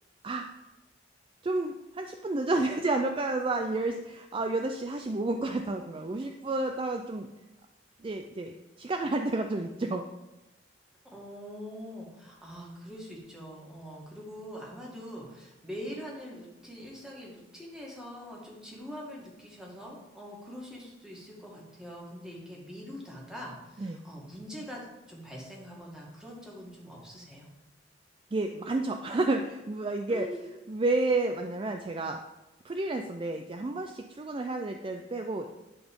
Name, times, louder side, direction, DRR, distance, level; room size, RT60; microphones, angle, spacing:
voice 1, 1.4-7.3 8.0-10.0 23.8-24.0 28.3-30.3 30.7-32.2 32.6-35.5, right 2 dB, 30° right, 5 dB, 0.4 m, -30 dB
voice 2, 11.1-27.5 30.1-30.4, equal, 5° right, -3 dB, 2.0 m, -43 dB
10.5 x 4.1 x 5.3 m, 1.0 s
head